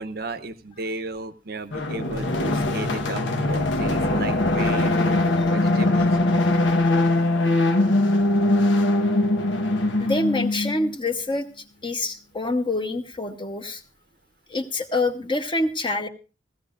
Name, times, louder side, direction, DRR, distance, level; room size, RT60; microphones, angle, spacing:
voice 1, 0.0-6.2, right 2 dB, 55° right, 11 dB, 0.7 m, -34 dB
sound 1, 1.7-10.9, left 2 dB, 85° left, 1.1 m, -21 dB
voice 2, 10.0-11.5 11.8-13.8 14.5-16.1, left 2 dB, 25° left, 6 dB, 1.0 m, -26 dB
16.5 x 16.0 x 2.5 m, 0.33 s
head